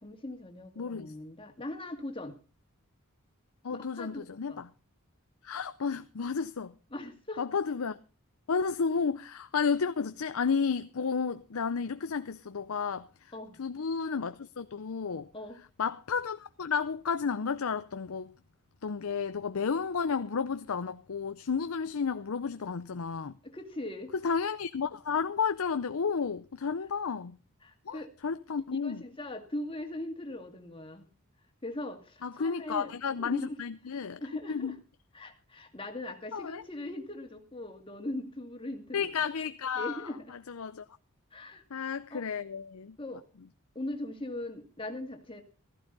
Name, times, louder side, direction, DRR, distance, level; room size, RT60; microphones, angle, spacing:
voice 1, 0.0-2.4 3.7-4.6 6.9-7.4 13.3-13.6 15.3-15.6 23.4-24.1 27.6-28.1 28.8-31.1 31.6-32.9 33.2-33.6 34.2-34.8 35.1-39.0 39.8-40.3 41.3-42.2 43.0-43.2 43.7-45.4, left 1 dB, 25° left, 2.2 m, -40 dB
voice 2, 0.8-1.1 3.6-4.7 5.4-6.8 7.4-8.0 8.5-13.3 13.6-15.3 15.8-18.3 18.8-23.4 24.2-27.4 27.9-29.0 32.2-34.2 34.5-34.8 36.3-36.6 38.9-40.8 41.7-43.0, left 5 dB, 70° left, 0.6 m, -32 dB
15.0 x 14.5 x 4.0 m
head